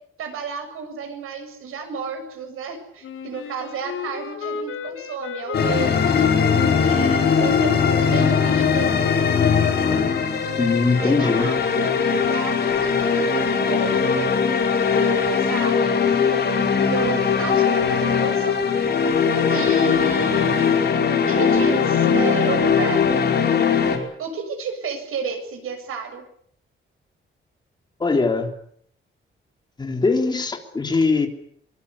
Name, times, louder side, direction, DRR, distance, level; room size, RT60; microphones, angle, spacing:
voice 1, 0.2-6.3 6.8-9.0 10.9-14.3 14.8-16.0 16.3-19.0 19.4-20.7 21.3-23.1 24.2-26.2, right 4 dB, 85° right, 7 dB, 7.6 m, -32 dB
Wind instrument woodwind instrument, 3.0-8.1, left 5 dB, 75° left, 7.6 m, -34 dB
sound 1, 5.5-24.0, left 6 dB, 50° left, 5.3 m, -20 dB
voice 2, 10.6-11.5 28.0-28.5 29.8-31.3, left 4 dB, 20° left, 4 dB, 3.6 m, -21 dB
24.5 x 23.5 x 8.5 m, 0.66 s
wide cardioid pair, 180°, 21 cm